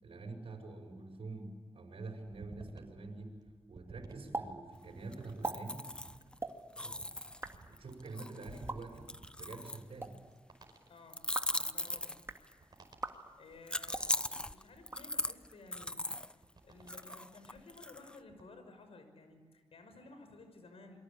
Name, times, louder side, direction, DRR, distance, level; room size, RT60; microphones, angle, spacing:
voice 1, 0.0-3.3 3.7-5.9 6.7-7.0 7.7-9.1 9.4-10.1, right 3 dB, 75° right, 1 dB, 5.3 m, -46 dB
sound 1, 2.2-17.5 18.0-18.4, right 3 dB, 45° right, 5.0 m, -57 dB
sound 2, 4.3-4.5 4.7-4.8 5.3-5.6 6.3-6.5 7.2-7.5 8.5-8.8 9.8-10.1 11.2-11.6 12.1-12.4 12.9-13.2 13.8-14.1 14.8-15.5, right 2 dB, 25° right, 2.3 m, -41 dB
sound 3, 5.1-6.4 6.8-10.2 11.1-12.5 13.7-16.3 16.9-18.2, left 1 dB, 10° left, 0.9 m, -39 dB
voice 2, 10.9-11.2 11.6-12.2 13.4-16.0 16.3-21.0, left 3 dB, 80° left, 7 dB, 5.8 m, -55 dB
28.0 x 23.5 x 8.6 m, 1.5 s
cardioid pair, 75°, 10 cm